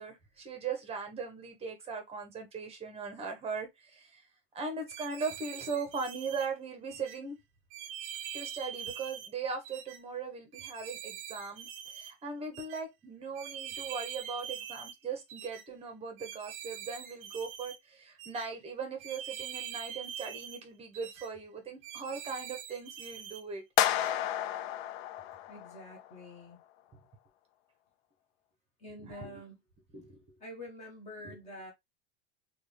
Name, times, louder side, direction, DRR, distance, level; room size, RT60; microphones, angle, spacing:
voice 1, 0.0-4.2 4.5-7.4 8.3-23.6 29.0-29.4 29.9-30.2 31.2-31.4, right 4 dB, 20° right, 0.9 m, -39 dB
sound 1, 4.9-6.5 6.9-7.2 7.7-9.3 9.6-10.0 10.5-12.1 12.5-12.8 13.3-15.0 15.3-15.6 16.2-17.8 18.2-18.5 19.0-20.6 20.9-21.3 21.8-23.4 23.8-24.1, right 9 dB, 40° right, 0.6 m, -43 dB
sound 2, 23.8-26.0, left 12 dB, 75° left, 0.5 m, -31 dB
voice 2, 25.5-26.6 28.8-29.6 30.4-31.7, left 1 dB, 20° left, 1.3 m, -47 dB
3.5 x 2.3 x 3.3 m
supercardioid pair, 155°, 31 cm